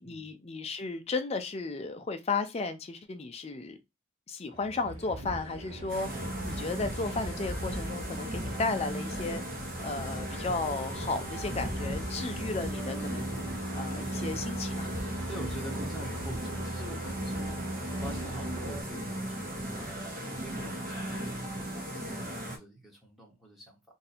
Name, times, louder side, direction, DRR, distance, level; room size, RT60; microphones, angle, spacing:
voice 1, 0.0-3.8 4.3-9.4 9.8-13.4 13.7-14.9, left 3 dB, 30° left, 0.4 m, -34 dB
sound 1, 4.5-18.8, right 1 dB, 90° right, 0.9 m, -39 dB
sound 2, 5.9-22.6, right 1 dB, 45° right, 1.0 m, -37 dB
sound 3, 10.9-15.9, left 1 dB, 70° left, 0.8 m, -53 dB
voice 2, 15.3-17.6 17.9-19.6 20.3-23.8, right 1 dB, ahead, 0.9 m, -45 dB
2.7 x 2.6 x 4.1 m
head